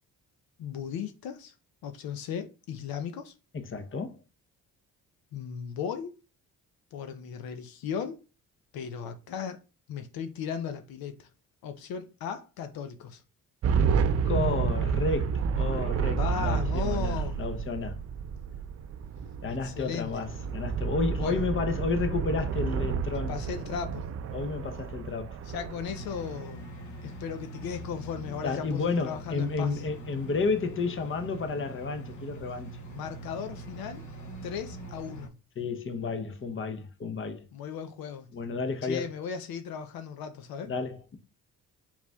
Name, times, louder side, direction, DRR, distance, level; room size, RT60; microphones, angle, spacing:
voice 1, 0.6-1.5 1.8-3.3 5.3-6.1 6.9-8.2 8.7-9.6 9.9-11.3 11.6-13.2 16.1-17.4 19.5-20.2 21.2-21.4 23.1-24.0 25.4-26.6 27.0-29.8 32.8-34.1 34.4-35.3 37.5-38.3 38.8-40.7, left 7 dB, 75° left, 0.6 m, -36 dB
voice 2, 3.5-4.2 14.2-18.0 19.4-23.3 24.3-25.4 28.4-32.7 35.6-37.4 38.3-39.1 40.6-41.2, left 4 dB, 35° left, 0.8 m, -31 dB
sound 1, 13.6-26.4, right 6 dB, 45° right, 0.5 m, -30 dB
sound 2, 25.9-35.3, right 2 dB, 55° left, 1.0 m, -43 dB
4.7 x 3.6 x 2.3 m
supercardioid pair, 65°, 36 cm